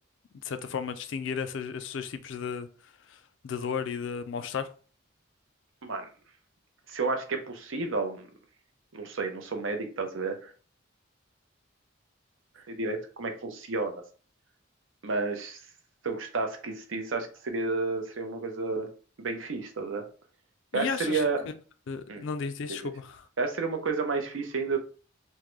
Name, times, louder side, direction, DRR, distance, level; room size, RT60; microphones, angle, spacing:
voice 1, 0.4-2.7 3.1-4.7 20.7-21.2 21.9-23.3, left 6 dB, 65° left, 0.4 m, -34 dB
voice 2, 6.9-8.3 8.9-10.5 12.6-13.9 15.0-15.6 16.0-18.9 19.2-20.0 20.7-21.4 22.1-22.3 22.7-22.9 23.4-24.8, right 3 dB, 70° right, 0.6 m, -31 dB
3.6 x 2.1 x 3.0 m
head